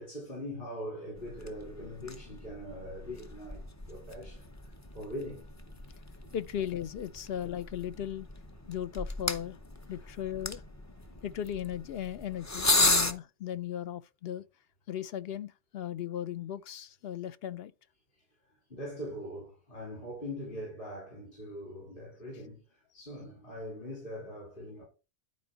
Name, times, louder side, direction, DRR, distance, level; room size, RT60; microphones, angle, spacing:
voice 1, 0.0-4.5 4.9-5.4 6.2-6.3 12.8-13.0 18.7-24.8, equal, 50° left, 4.2 m, -42 dB
sound 1, 1.2-13.1, left 2 dB, 20° left, 0.6 m, -35 dB
voice 2, 6.3-8.3 8.7-9.6 9.9-10.6 11.2-14.4 14.9-17.7, left 10 dB, 65° left, 0.7 m, -37 dB
12.0 x 4.5 x 4.0 m
omnidirectional pair, 1.2 m